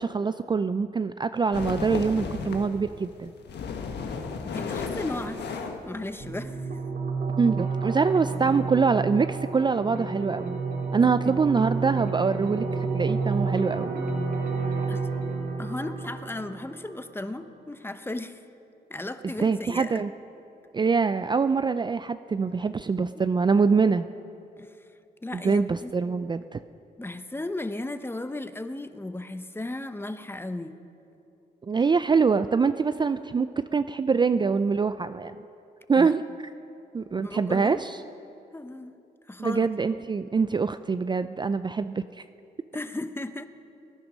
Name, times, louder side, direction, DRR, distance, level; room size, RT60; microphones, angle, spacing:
voice 1, 0.0-3.3 7.4-10.6 10.9-12.7 12.9-14.0 19.4-20.1 20.7-24.1 25.4-26.6 31.7-35.4 35.9-36.2 36.9-38.0 39.4-42.2, right 5 dB, 25° right, 11 dB, 0.4 m, -24 dB
sound 1, 1.5-2.8 3.2-6.6, left 5 dB, 80° left, 1.3 m, -33 dB
voice 2, 4.4-6.8 11.0-11.4 14.6-15.1 15.6-18.4 18.9-20.0 24.6-24.9 25.2-25.9 27.0-30.8 36.0-36.1 37.2-37.9 38.5-39.0 39.3-39.7 42.7-43.5, left 2 dB, 15° left, 10 dB, 0.8 m, -36 dB
sound 2, 6.2-17.2, right 4 dB, 70° right, 2.4 m, -30 dB
20.5 x 10.5 x 6.2 m, 2.8 s
cardioid pair, 80°, 17 cm